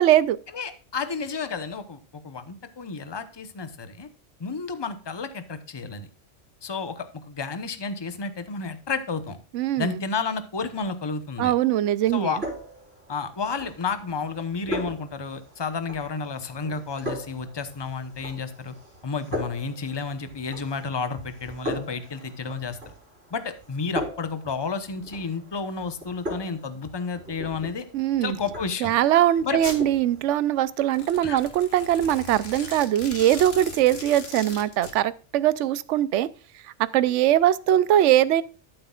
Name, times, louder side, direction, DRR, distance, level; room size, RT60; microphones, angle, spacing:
voice 1, 0.0-0.4 9.5-10.0 11.4-12.4 27.9-28.4 28.8-36.3 36.8-38.4, right 12 dB, 75° right, 18 dB, 0.9 m, -21 dB
voice 2, 0.5-4.1 4.4-6.1 6.6-9.4 9.8-11.5 12.1-12.4 13.1-18.7 19.0-22.8 23.3-27.9 28.2-28.9 29.4-29.6 31.2-31.4, left 5 dB, 25° left, 10 dB, 0.8 m, -31 dB
sound 1, 12.0-30.2, equal, 55° right, 4.1 m, -39 dB
Domestic sounds home sounds, 29.6-29.8 30.8-34.9, left 3 dB, 55° left, 1.9 m, -38 dB
13.5 x 7.9 x 2.4 m, 0.37 s
omnidirectional pair, 1.3 m